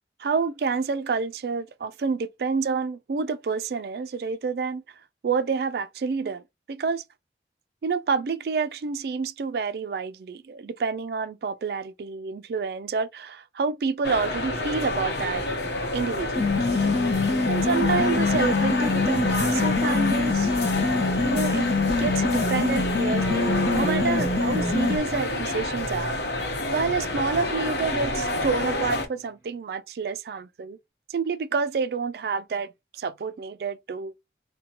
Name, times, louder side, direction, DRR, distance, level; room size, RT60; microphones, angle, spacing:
voice 1, 0.2-4.8 5.2-6.4 6.7-7.0 7.8-15.4 15.9-16.9 17.5-20.5 21.2-21.7 22.0-30.8 31.1-34.1, right 5 dB, 60° right, 0.3 m, -28 dB
sound 1, 14.0-29.1, left 2 dB, 70° left, 0.8 m, -28 dB
sound 2, 16.3-25.0, left 4 dB, 35° left, 0.6 m, -25 dB
sound 3, 23.2-25.6 27.2-29.4, right 4 dB, 15° right, 1.2 m, -37 dB
2.8 x 2.2 x 2.5 m
head